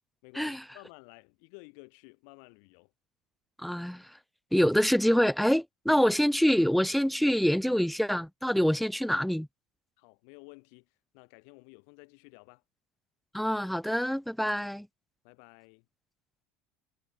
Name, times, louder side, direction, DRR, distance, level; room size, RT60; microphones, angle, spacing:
voice 1, 0.2-2.9 10.0-12.6 15.2-15.9, left 40 dB or more, 75° left, 7.0 m, -53 dB
voice 2, 3.6-4.0 4.5-9.5 13.3-14.9, equal, ahead, 1.6 m, -25 dB
cardioid pair, 140°, 5 cm